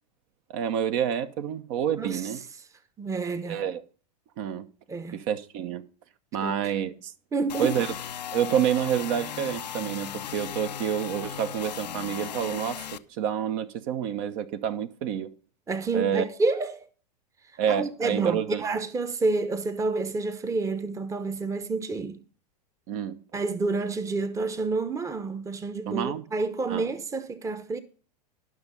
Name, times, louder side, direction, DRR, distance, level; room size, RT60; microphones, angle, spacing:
voice 1, 0.5-2.4 3.5-3.8 4.4-4.6 5.1-5.8 6.3-7.1 7.6-7.9 8.3-12.8 13.2-15.3 15.9-16.2 17.6-18.6 22.9-23.2 25.9-26.2 26.7-26.9, right 9 dB, 55° right, 1.0 m, -28 dB
voice 2, 2.0-2.3 3.0-3.6 4.9-5.2 6.4-6.7 7.3-7.8 15.7-16.9 17.7-22.2 23.3-27.8, right 3 dB, 15° right, 0.9 m, -29 dB
sound 1, 7.5-13.0, left 10 dB, 85° left, 0.7 m, -37 dB
12.0 x 6.2 x 5.3 m
hypercardioid pair, 100°, 21 cm